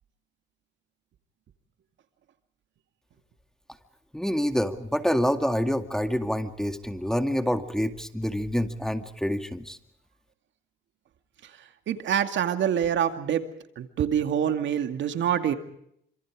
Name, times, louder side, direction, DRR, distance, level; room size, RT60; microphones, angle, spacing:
voice 1, 4.1-9.8, equal, 5° left, 8 dB, 2.1 m, -27 dB
voice 2, 11.9-13.4 13.8-15.5, right 9 dB, 70° right, 8 dB, 2.3 m, -25 dB
27.5 x 26.5 x 4.9 m, 0.72 s
cardioid pair, 90°, 20 cm